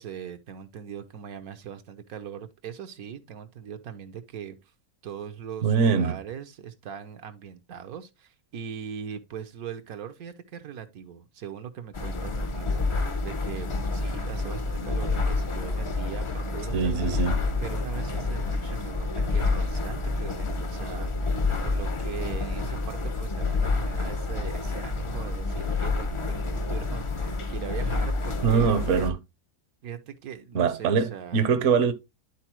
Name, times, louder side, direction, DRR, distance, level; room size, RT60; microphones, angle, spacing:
voice 1, 0.0-4.7 5.0-17.1 17.6-28.7 29.8-31.5, right 8 dB, 75° right, 1.3 m, -40 dB
voice 2, 5.6-6.2 16.7-17.4 28.4-29.2 30.5-31.9, right 6 dB, 60° right, 1.0 m, -23 dB
sound 1, 11.9-29.1, left 3 dB, 40° left, 0.4 m, -28 dB
11.5 x 4.0 x 3.0 m
omnidirectional pair, 1.6 m